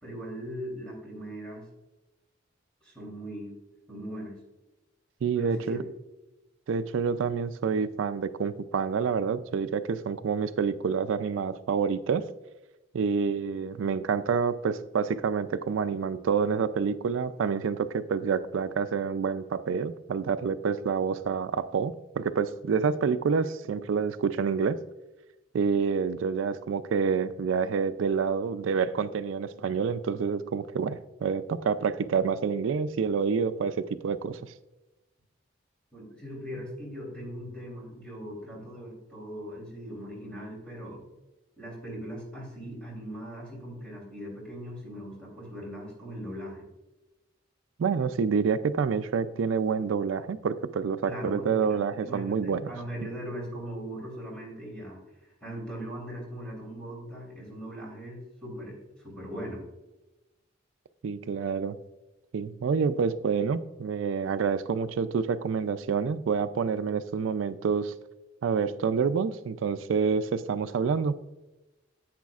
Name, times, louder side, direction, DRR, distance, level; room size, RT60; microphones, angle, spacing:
voice 1, 0.0-1.7 2.8-3.5 3.9-4.4 5.3-5.8 35.9-41.0 41.6-46.6 51.1-58.8 59.0-59.6, equal, 5° left, -3 dB, 3.1 m, -39 dB
voice 2, 5.2-5.8 6.7-12.2 12.9-24.8 25.5-34.5 47.8-52.7 61.0-61.8 62.3-67.9 68.4-71.2, right 6 dB, 80° right, 12 dB, 0.4 m, -28 dB
10.5 x 8.3 x 2.4 m, 1.0 s
head